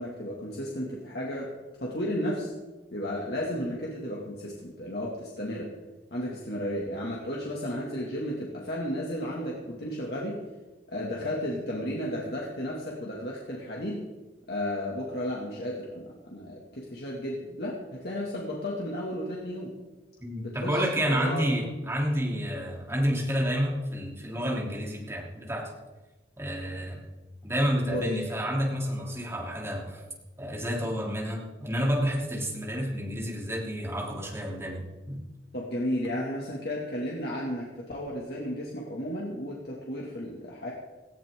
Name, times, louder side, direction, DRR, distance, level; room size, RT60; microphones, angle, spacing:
voice 1, 0.0-1.5 1.8-2.5 2.9-5.7 6.1-10.4 10.9-14.0 14.5-19.7 20.4-21.4 27.9-28.1 35.5-40.7, equal, 60° left, -3 dB, 2.4 m, -33 dB
voice 2, 20.2-25.7 26.4-27.0 27.4-30.0 30.4-35.2, equal, 15° right, -2 dB, 3.3 m, -29 dB
18.5 x 15.0 x 3.8 m, 1.2 s
head